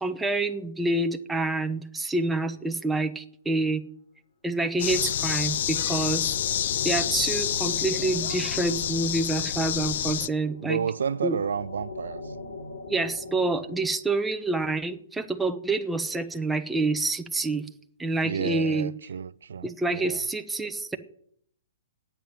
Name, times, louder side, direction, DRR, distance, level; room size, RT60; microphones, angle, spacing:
voice 1, 0.0-3.8 4.4-6.3 6.8-10.8 11.2-11.4 12.9-17.6 18.0-18.9 19.6-21.0, right 2 dB, 5° right, 0.9 m, -27 dB
sound 1, 4.8-10.3, left 10 dB, 60° left, 0.6 m, -28 dB
sound 2, 5.2-13.9, left 3 dB, 80° left, 2.7 m, -42 dB
voice 2, 10.6-12.3 18.2-20.2, right 7 dB, 85° right, 0.5 m, -31 dB
10.5 x 8.8 x 9.2 m
hypercardioid pair, 140°, 0 cm